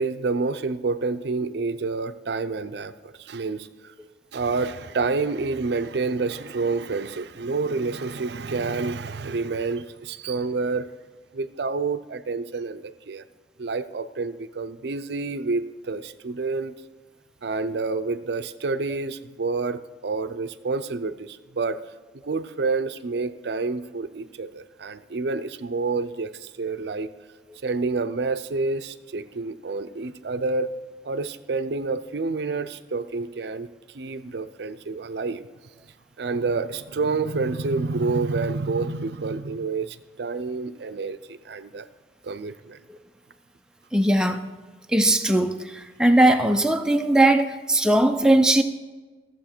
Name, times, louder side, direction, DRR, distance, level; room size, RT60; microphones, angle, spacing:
voice 1, 0.0-3.9 4.3-10.9 11.3-13.2 13.6-16.7 17.4-21.8 22.2-27.1 27.6-30.7 31.0-35.4 36.2-41.9 42.2-42.8, right 3 dB, 65° right, 11 dB, 0.5 m, -28 dB
voice 2, 43.9-44.4 44.9-48.6, right 1 dB, 5° right, 5 dB, 0.4 m, -19 dB
14.5 x 7.3 x 4.4 m, 1.3 s
head